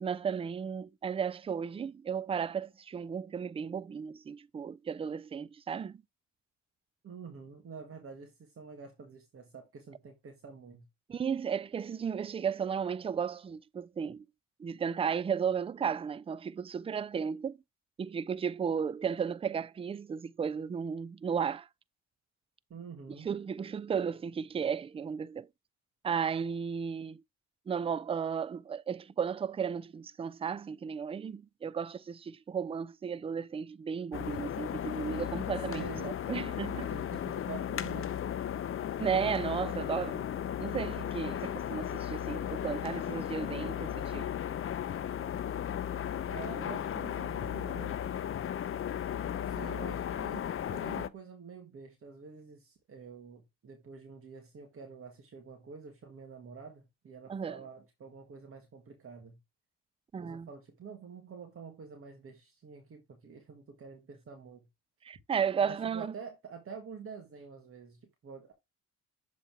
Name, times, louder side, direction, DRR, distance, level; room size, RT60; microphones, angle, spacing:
voice 1, 0.0-6.0 11.1-14.2 14.6-17.6 18.0-21.7 23.2-25.5 26.0-27.2 27.7-36.9 39.0-40.2 40.6-44.3 57.3-57.6 60.1-60.5 65.0-66.1, right 7 dB, 20° right, 0.3 m, -34 dB
voice 2, 7.0-10.9 22.7-23.3 35.7-36.1 36.7-38.6 46.3-48.0 49.4-59.4 60.2-64.7 65.6-68.5, right 6 dB, 45° right, 1.8 m, -47 dB
sound 1, 34.1-51.1, left 10 dB, 45° left, 0.6 m, -35 dB
7.2 x 4.1 x 3.3 m
cardioid pair, 90°, 30 cm